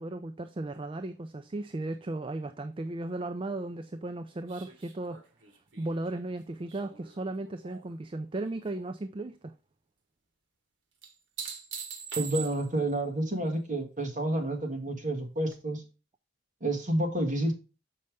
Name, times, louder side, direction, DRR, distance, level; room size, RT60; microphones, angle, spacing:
voice 1, 0.0-5.2 5.8-9.5, right 2 dB, 30° right, 0.4 m, -36 dB
sound 1, 4.5-8.0 8.3-8.9 11.0-12.9 15.5-15.6, right 7 dB, 85° right, 1.3 m, -43 dB
voice 2, 12.2-15.8 16.6-17.5, right 1 dB, 45° right, 1.7 m, -29 dB
6.5 x 5.5 x 3.4 m
head